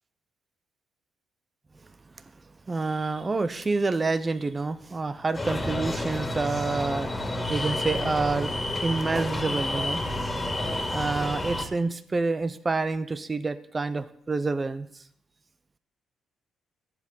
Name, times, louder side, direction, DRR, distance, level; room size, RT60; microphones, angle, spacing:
voice 1, 2.7-8.5 8.8-10.0 10.9-14.9, right 3 dB, 25° right, 13 dB, 0.8 m, -28 dB
sound 1, 5.3-11.7, left 1 dB, 15° left, 2.9 m, -30 dB
13.0 x 7.7 x 9.2 m, 0.69 s
cardioid pair, 90°, 0 cm